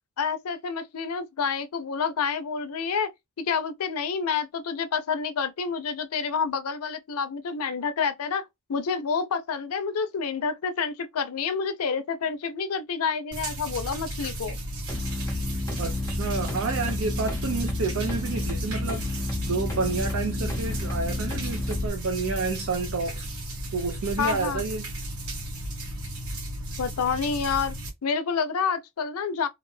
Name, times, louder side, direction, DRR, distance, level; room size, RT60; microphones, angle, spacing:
voice 1, 0.2-3.1 3.4-8.4 8.7-14.6 24.2-24.6 26.8-27.8 28.0-29.5, left 6 dB, 85° left, 0.5 m, -28 dB
sound 1, 13.3-27.9, right 1 dB, 85° right, 1.0 m, -35 dB
sound 2, 14.9-21.9, left 2 dB, 15° left, 0.6 m, -31 dB
voice 2, 15.8-23.3 23.7-24.8, right 4 dB, 70° right, 0.4 m, -30 dB
2.4 x 2.2 x 3.1 m
head